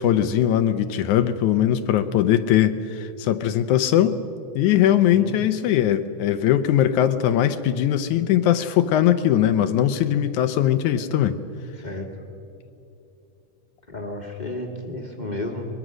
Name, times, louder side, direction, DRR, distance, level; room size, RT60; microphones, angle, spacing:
voice 1, 0.0-4.2 4.6-11.4, left 11 dB, 75° left, 10 dB, 2.1 m, -20 dB
voice 2, 13.9-15.7, left 2 dB, 20° left, 1 dB, 1.4 m, -32 dB
23.0 x 21.5 x 6.2 m, 2.7 s
omnidirectional pair, 3.6 m